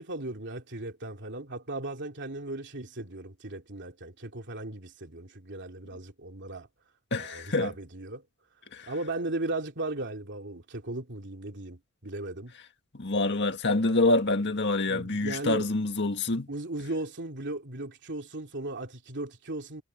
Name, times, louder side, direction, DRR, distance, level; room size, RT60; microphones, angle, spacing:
voice 1, 0.0-6.7 7.2-8.2 8.8-12.5 14.8-15.7 16.5-19.8, right 2 dB, 55° right, 3.0 m, -37 dB
voice 2, 7.1-7.7 8.7-8.9 13.0-16.5, left 2 dB, 50° left, 1.9 m, -26 dB
head